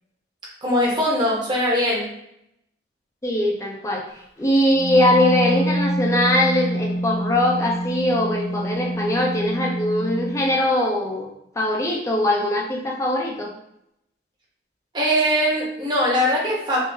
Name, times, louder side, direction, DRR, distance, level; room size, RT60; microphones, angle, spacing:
voice 1, 0.6-2.1 14.9-16.8, equal, 25° right, -4 dB, 0.9 m, -21 dB
voice 2, 3.2-4.0 4.4-11.3 11.6-13.5, left 1 dB, 15° left, 0 dB, 0.5 m, -21 dB
Wind instrument woodwind instrument, 4.7-10.4, right 1 dB, 85° left, 0.7 m, -26 dB
3.7 x 2.6 x 2.6 m, 0.79 s
head